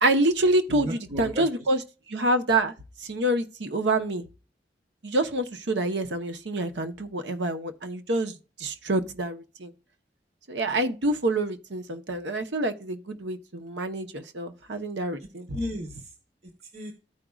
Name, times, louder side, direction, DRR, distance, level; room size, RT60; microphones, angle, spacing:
voice 1, 0.0-1.8 2.1-2.7 3.0-4.2 5.0-9.7 10.5-15.5, right 1 dB, 85° right, 0.9 m, -27 dB
voice 2, 0.7-1.7 15.5-16.1 16.6-16.9, equal, 35° right, 1.0 m, -35 dB
14.0 x 5.0 x 2.4 m
head